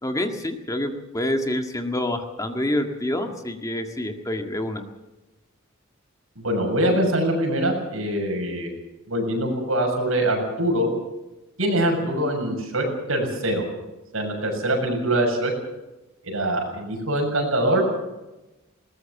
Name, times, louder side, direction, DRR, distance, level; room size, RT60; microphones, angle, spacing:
voice 1, 0.0-4.8, left 1 dB, 15° left, 5 dB, 1.8 m, -27 dB
voice 2, 6.4-8.7 9.1-10.9 11.6-13.6 14.1-15.5 16.2-17.9, right 1 dB, 85° right, 2 dB, 7.1 m, -23 dB
21.0 x 19.0 x 7.1 m, 1.0 s
head